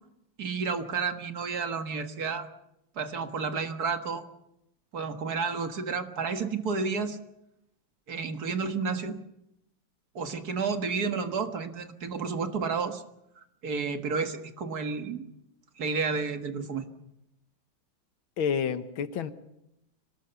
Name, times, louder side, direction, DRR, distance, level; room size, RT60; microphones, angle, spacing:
voice 1, 0.4-2.5 3.0-4.2 4.9-7.2 8.1-9.2 10.2-13.0 13.6-15.3 15.8-16.9, right 5 dB, 50° right, 8 dB, 2.1 m, -31 dB
voice 2, 18.4-19.3, left 7 dB, 90° left, 11 dB, 2.1 m, -29 dB
25.5 x 18.5 x 7.0 m, 0.83 s
omnidirectional pair, 2.1 m